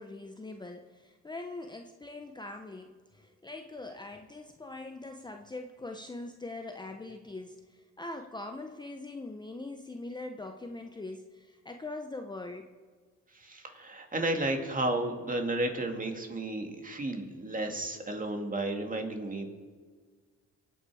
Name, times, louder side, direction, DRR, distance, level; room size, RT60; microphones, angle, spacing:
voice 1, 0.0-12.7 18.2-18.3, left 2 dB, 15° left, 5 dB, 0.8 m, -42 dB
voice 2, 13.3-19.5, right 1 dB, 25° right, 4 dB, 2.4 m, -33 dB
24.5 x 8.8 x 4.9 m, 1.5 s
cardioid pair, 90°, 30 cm